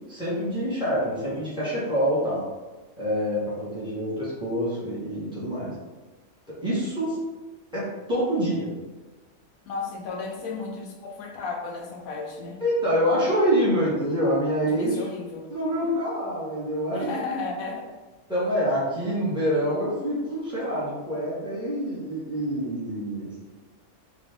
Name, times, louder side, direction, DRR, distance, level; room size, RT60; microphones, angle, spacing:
voice 1, 0.1-2.4 3.0-5.7 6.6-7.2 7.7-8.7 12.6-15.0 15.5-17.2 18.3-23.3, equal, 5° right, -9 dB, 1.1 m, -26 dB
voice 2, 9.7-12.6 14.6-15.5 16.9-17.9, left 4 dB, 75° left, 1 dB, 1.0 m, -33 dB
2.7 x 2.6 x 3.5 m, 1.2 s
omnidirectional pair, 1.5 m